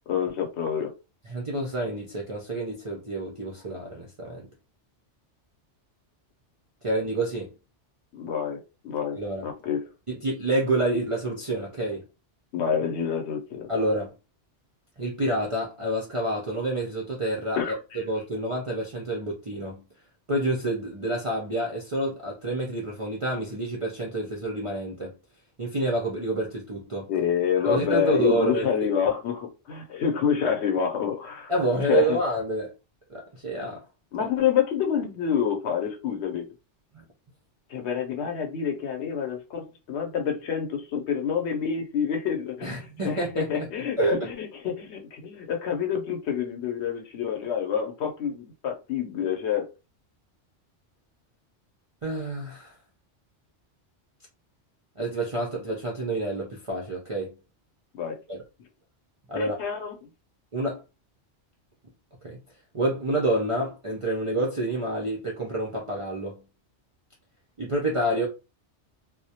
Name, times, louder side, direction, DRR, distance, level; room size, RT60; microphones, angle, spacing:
voice 1, 0.1-0.9 8.1-9.9 12.5-13.7 17.6-18.0 27.1-31.5 31.8-32.2 34.1-36.5 37.7-49.7 57.9-58.2 59.4-59.9, left 8 dB, 70° left, 0.9 m, -27 dB
voice 2, 1.3-4.5 6.8-7.5 9.2-9.4 10.1-12.0 13.7-14.1 15.0-19.8 20.3-25.1 25.6-27.1 27.6-28.7 31.5-32.7 33.1-33.8 36.9-37.0 42.6-43.7 44.0-44.2 52.0-52.7 55.0-57.3 58.3-58.4 59.3-59.6 60.5-60.8 62.2-62.4 62.7-66.4 67.6-68.3, right 1 dB, 50° right, 0.4 m, -28 dB
2.2 x 2.1 x 2.7 m
omnidirectional pair, 1.2 m